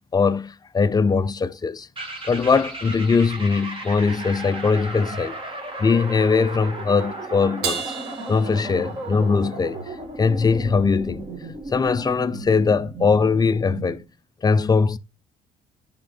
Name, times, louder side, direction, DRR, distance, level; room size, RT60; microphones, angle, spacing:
voice 1, 0.1-1.9 2.3-5.4 5.8-7.9 8.3-9.8 10.2-11.2 11.7-14.0 14.4-15.0, left 5 dB, 25° left, 0.5 m, -21 dB
sound 1, 2.0-14.0, right 2 dB, 30° right, 2.3 m, -35 dB
Crash cymbal, 7.6-9.4, right 6 dB, 75° right, 1.3 m, -32 dB
10.5 x 3.7 x 4.2 m
cardioid pair, 110°, 17 cm